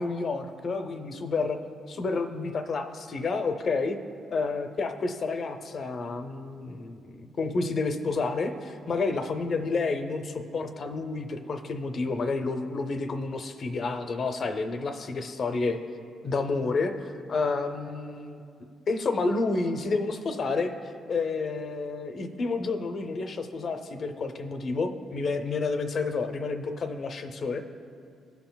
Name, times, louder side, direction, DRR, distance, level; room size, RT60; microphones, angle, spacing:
voice 1, 0.0-1.6 1.9-4.0 4.3-15.8 16.2-18.5 18.9-20.7 21.1-27.6, left 3 dB, 50° left, 7 dB, 0.6 m, -30 dB
15.0 x 5.8 x 2.3 m, 2.4 s
cardioid pair, 90°, 0 cm